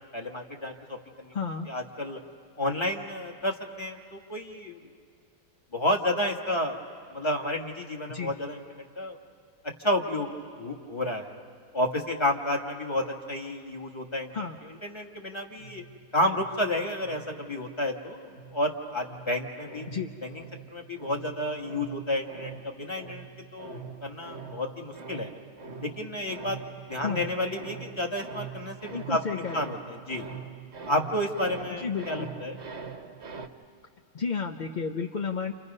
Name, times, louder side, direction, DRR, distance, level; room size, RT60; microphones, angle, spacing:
voice 1, 0.1-1.3 1.7-2.2 2.6-4.8 5.7-6.8 7.1-9.2 9.8-11.3 11.7-14.3 14.8-15.8 16.1-19.8 20.2-20.4 20.7-23.2 23.5-25.3 25.8-26.6 26.9-30.3 30.9-32.6, left 1 dB, 15° left, 2 dB, 1.6 m, -31 dB
voice 2, 1.3-1.7 8.1-8.3 14.3-14.6 19.9-20.1 27.0-27.3 28.9-29.7 31.8-32.3 34.1-35.5, left 5 dB, 50° left, 4 dB, 0.5 m, -32 dB
sound 1, 15.5-17.9 18.3-33.5, right 5 dB, 45° right, 1.3 m, -43 dB
30.0 x 28.0 x 5.4 m, 2.2 s
omnidirectional pair, 1.8 m